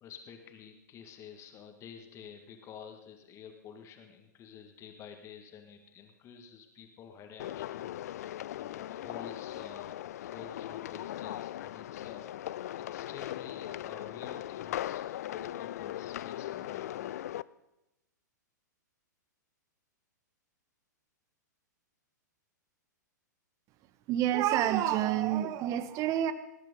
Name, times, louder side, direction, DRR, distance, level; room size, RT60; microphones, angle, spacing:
voice 1, 0.0-8.3 8.6-12.5 12.8-15.0 15.3-17.2, left 7 dB, 30° left, 5 dB, 1.9 m, -50 dB
sound 1, 7.4-17.4, left 13 dB, 55° left, 0.4 m, -39 dB
voice 2, 24.1-26.3, right 12 dB, 35° right, 13 dB, 1.0 m, -28 dB
19.5 x 10.5 x 5.4 m, 0.91 s
figure-of-eight pair, 110°, 10 cm